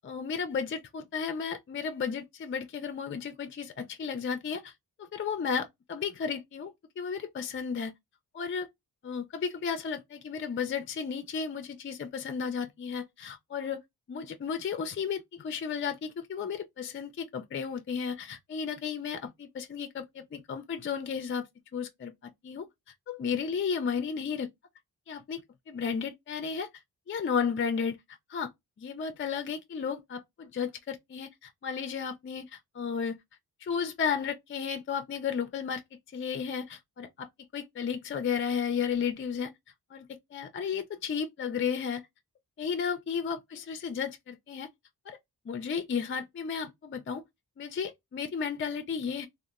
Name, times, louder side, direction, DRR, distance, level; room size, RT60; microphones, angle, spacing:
voice 1, 0.0-4.7 5.0-7.9 8.3-8.7 9.0-13.8 14.1-21.5 21.7-22.7 23.1-24.5 25.1-25.4 25.7-26.7 27.1-28.0 28.3-28.5 28.8-33.2 33.6-35.8 36.1-37.3 37.5-39.5 39.9-40.1 40.3-42.1 42.6-44.7 45.1-45.2 45.5-47.2 47.6-49.3, left 6 dB, 35° left, 0.4 m, -33 dB
2.8 x 2.0 x 2.3 m
cardioid pair, 80°, 40 cm